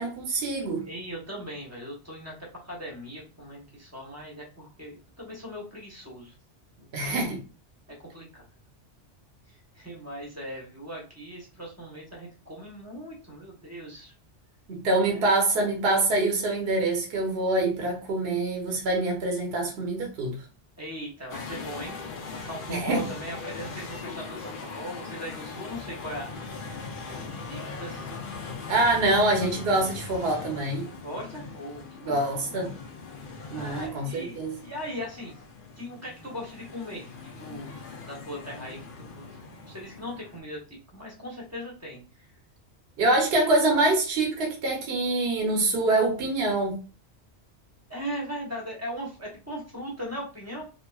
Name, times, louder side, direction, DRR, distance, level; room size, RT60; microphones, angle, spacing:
voice 1, 0.0-0.8 6.9-7.4 14.7-20.4 22.7-23.0 28.7-30.9 32.0-32.7 33.5-34.5 43.0-46.8, right 2 dB, 60° right, 0.9 m, -25 dB
voice 2, 0.8-6.3 6.8-7.3 8.1-8.4 9.5-14.1 15.0-15.2 20.8-22.0 22.3-26.3 26.9-28.1 29.1-29.6 31.0-32.5 33.5-35.3 35.8-37.1 37.4-37.7 38.1-39.4 39.7-42.3 47.9-50.6, equal, 15° right, 0.9 m, -39 dB
sound 1, 21.3-40.4, left 4 dB, 60° left, 0.6 m, -40 dB
2.9 x 2.5 x 2.2 m
omnidirectional pair, 1.2 m